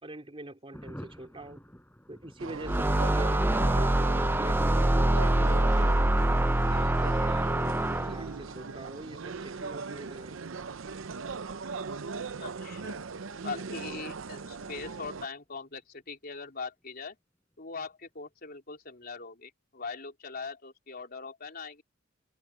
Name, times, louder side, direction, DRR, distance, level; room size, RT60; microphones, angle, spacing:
voice 1, 0.0-1.6 2.1-6.1 6.7-10.4, right 1 dB, 30° right, 3.4 m, -43 dB
Thunder, 0.7-16.8 17.1-17.2 17.5-17.6 17.9-18.3, equal, 10° left, 4.4 m, -56 dB
sound 1, 2.4-15.3, right 4 dB, 75° right, 0.7 m, -39 dB
sound 2, 2.6-8.4, right 1 dB, 10° right, 0.5 m, -25 dB
voice 2, 12.4-13.1 13.4-17.2 17.6-21.8, left 4 dB, 50° left, 4.0 m, -41 dB
head